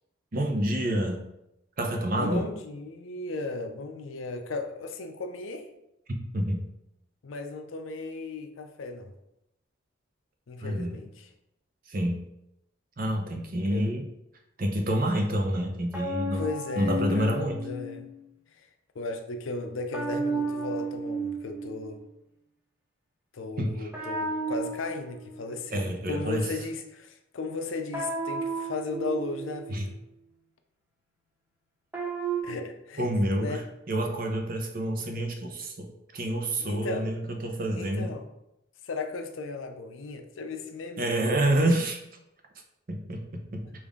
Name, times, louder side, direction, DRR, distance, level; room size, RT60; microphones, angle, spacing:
voice 1, 0.3-1.2 1.8-2.5 6.3-6.6 10.6-10.9 11.9-12.2 13.0-14.0 14.6-16.4 16.8-17.6 23.6-23.9 25.7-26.5 29.7-29.8 33.0-33.6 33.9-38.1 41.0-42.0 42.9-43.6, right 1 dB, 45° right, 2 dB, 0.6 m, -28 dB
voice 2, 2.2-5.7 7.2-9.1 10.5-11.3 13.7-13.9 16.3-18.1 18.5-18.7 18.9-22.0 23.3-30.0 32.4-33.0 33.4-33.6 36.6-37.1 37.8-38.2 38.8-41.0, left 3 dB, 75° left, 6 dB, 0.5 m, -36 dB
sound 1, 15.9-18.2 19.9-22.0 23.9-26.0 27.9-29.9 31.9-32.4, right 2 dB, 10° right, 0.7 m, -33 dB
5.2 x 2.6 x 3.6 m, 0.86 s
head